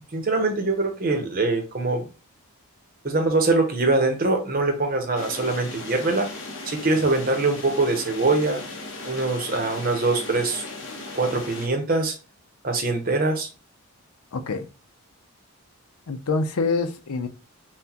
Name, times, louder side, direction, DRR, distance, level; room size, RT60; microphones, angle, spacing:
voice 1, 0.1-2.0 3.0-6.3 6.7-8.6 9.0-10.6 11.2-12.1 12.6-13.5, right 3 dB, 40° right, 5 dB, 0.8 m, -23 dB
sound 1, 5.2-11.7, left 2 dB, 60° left, 1.0 m, -37 dB
voice 2, 16.1-17.3, left 4 dB, 90° left, 9 dB, 0.6 m, -25 dB
5.8 x 2.2 x 2.8 m, 0.31 s
head